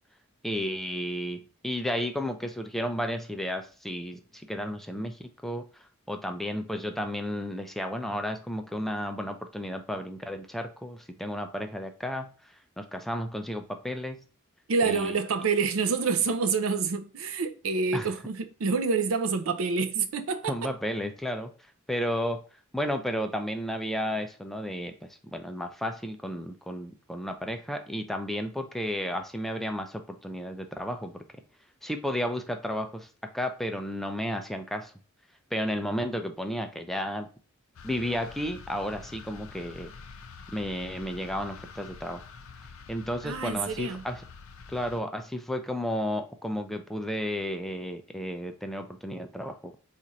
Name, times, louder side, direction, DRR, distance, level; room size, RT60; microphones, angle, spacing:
voice 1, 0.4-14.2 14.8-15.1 17.9-18.1 20.5-21.5 21.9-22.4 22.7-31.2 31.8-34.9 35.5-37.3 37.8-39.9 40.5-42.2 42.9-44.2 44.7-49.7, equal, ahead, 0.4 m, -33 dB
voice 2, 14.7-20.7 43.2-44.0, right 5 dB, 75° right, 0.5 m, -27 dB
sound 1, 37.8-45.0, left 5 dB, 80° left, 0.5 m, -47 dB
4.3 x 2.5 x 3.9 m
head